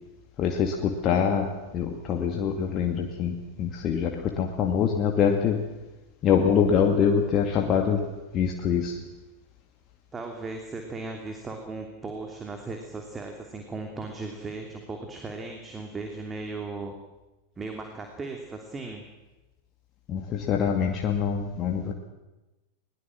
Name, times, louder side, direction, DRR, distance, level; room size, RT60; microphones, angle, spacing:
voice 1, 0.4-5.7 6.2-8.1 8.3-9.0 20.1-21.9, left 7 dB, 30° left, 3 dB, 2.2 m, -24 dB
voice 2, 10.1-16.9 17.6-19.0, right 3 dB, 15° right, 3 dB, 3.0 m, -37 dB
21.5 x 20.5 x 7.7 m, 1.1 s
figure-of-eight pair, 90°, 0 cm